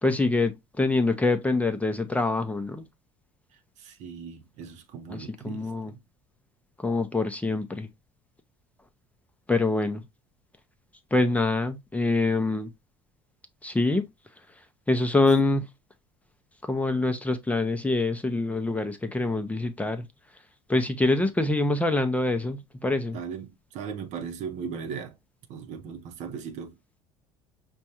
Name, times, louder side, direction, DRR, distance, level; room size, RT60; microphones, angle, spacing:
voice 1, 0.0-2.8 5.1-5.9 6.8-7.9 9.5-10.0 11.1-12.7 13.6-14.1 14.9-15.6 16.6-20.1 20.7-23.2, left 2 dB, 10° left, 0.6 m, -25 dB
voice 2, 3.8-6.0 23.1-25.2 25.5-26.7, right 6 dB, 60° right, 0.7 m, -38 dB
5.1 x 2.3 x 2.9 m
supercardioid pair, 85°, 14 cm